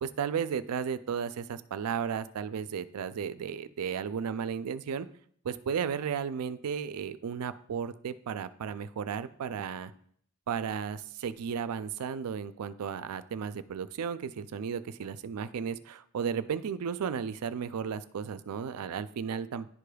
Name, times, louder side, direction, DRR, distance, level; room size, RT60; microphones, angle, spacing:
voice 1, 0.0-5.1 5.4-9.9 10.5-19.7, right 7 dB, 90° right, 14 dB, 0.4 m, -34 dB
11.0 x 4.9 x 2.3 m, 0.63 s
head